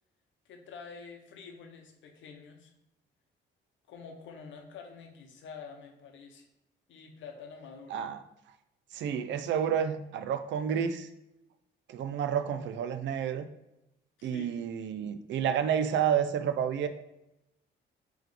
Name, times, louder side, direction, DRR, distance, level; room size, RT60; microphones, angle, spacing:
voice 1, 0.4-2.7 3.9-6.5 6.9-8.0 14.2-14.6, left 5 dB, 75° left, 3 dB, 0.8 m, -47 dB
voice 2, 8.9-11.1 11.9-13.5 14.2-16.9, right 8 dB, 70° right, 10 dB, 0.4 m, -30 dB
3.7 x 3.0 x 3.4 m, 0.88 s
cardioid pair, 90°, 20 cm